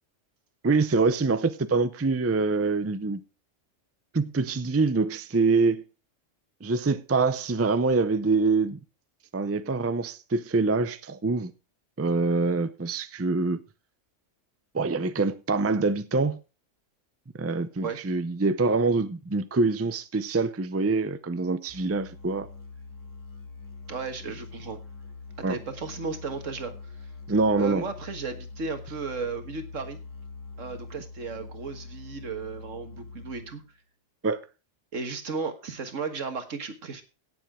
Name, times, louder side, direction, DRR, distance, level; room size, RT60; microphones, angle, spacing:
voice 1, 0.6-3.2 4.1-5.8 6.6-8.8 9.3-11.5 12.0-13.6 14.7-16.4 17.4-22.5 25.4-25.6 27.3-27.8 34.2-34.4, right 3 dB, 20° right, 0.4 m, -25 dB
Musical instrument, 21.7-33.7, left 4 dB, 15° left, 2.2 m, -44 dB
voice 2, 23.9-24.8 25.4-27.1 27.6-30.0 30.6-33.6 34.9-37.0, right 4 dB, 80° right, 1.9 m, -35 dB
17.0 x 7.2 x 3.7 m
omnidirectional pair, 1.3 m